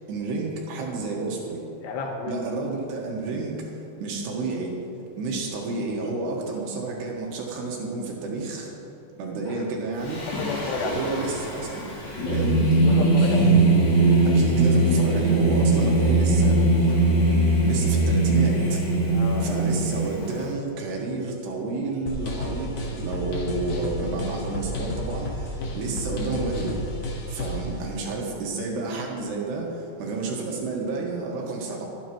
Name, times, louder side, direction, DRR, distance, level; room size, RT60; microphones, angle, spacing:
voice 1, 0.1-1.6 2.3-3.7 4.0-4.8 5.2-8.7 9.1-10.2 10.8-11.8 12.3-12.7 14.2-16.9 17.6-18.8 19.4-26.8 27.3-31.9, right 3 dB, 75° right, -2 dB, 3.7 m, -30 dB
voice 2, 1.8-2.3 9.5-9.6 10.3-11.0 12.8-13.6 19.1-19.6 25.6-25.7, left 4 dB, 75° left, 1 dB, 3.2 m, -31 dB
Singing, 10.0-20.4, right 2 dB, 30° left, 2.9 m, -21 dB
sound 1, 22.1-27.7, left 1 dB, 55° left, 2.1 m, -31 dB
25.5 x 9.1 x 3.1 m, 2.7 s
omnidirectional pair, 5.1 m